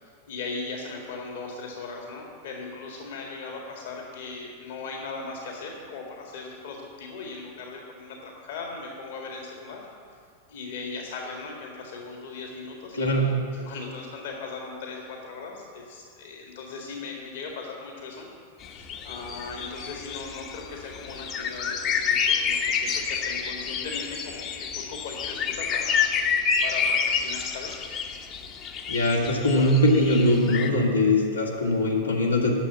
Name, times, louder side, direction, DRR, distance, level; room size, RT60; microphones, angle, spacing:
voice 1, 0.0-9.8 10.5-13.3 13.6-18.3 18.7-26.1 26.6-27.8, left 4 dB, 55° left, 0 dB, 1.8 m, -38 dB
voice 2, 12.9-13.3 28.9-32.5, left 1 dB, 80° left, -3 dB, 2.1 m, -21 dB
sound 1, 18.6-30.7, left 6 dB, 35° left, 1.0 m, -28 dB
10.5 x 7.4 x 9.4 m, 2.3 s
figure-of-eight pair, 90°, 0 cm